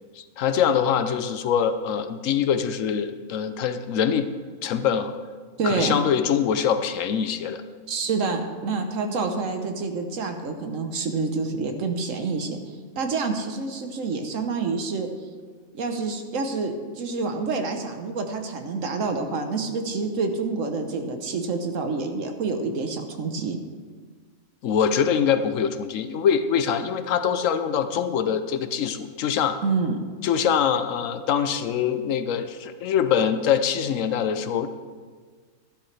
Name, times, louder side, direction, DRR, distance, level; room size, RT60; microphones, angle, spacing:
voice 1, 0.2-4.3 4.6-5.1 5.6-7.6 24.6-29.6 30.2-34.7, left 8 dB, 70° left, 10 dB, 1.1 m, -24 dB
voice 2, 5.6-6.0 7.9-12.6 13.0-15.1 15.7-23.6 29.6-30.0, right 4 dB, 70° right, 5 dB, 1.3 m, -27 dB
13.0 x 11.5 x 3.3 m, 1.5 s
omnidirectional pair, 1.4 m